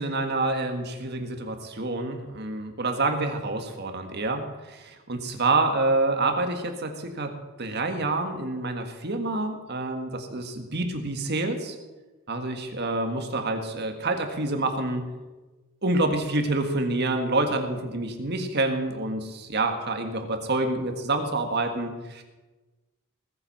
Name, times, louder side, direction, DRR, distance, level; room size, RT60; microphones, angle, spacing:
voice 1, 0.0-7.3 7.6-11.7 12.3-15.1 15.8-22.2, right 2 dB, 50° right, 5 dB, 1.7 m, -27 dB
19.5 x 7.7 x 5.5 m, 1.2 s
head